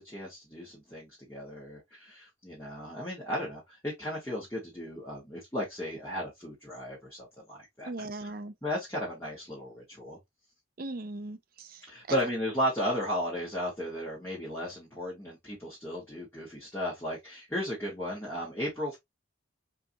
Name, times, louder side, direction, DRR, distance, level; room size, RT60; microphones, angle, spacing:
voice 1, 0.0-7.9 8.2-8.3 8.6-10.2 11.9-19.0, equal, 15° left, 1.4 m, -35 dB
voice 2, 7.9-8.5 10.8-12.3, right 2 dB, 45° right, 0.5 m, -39 dB
4.5 x 2.5 x 2.7 m
head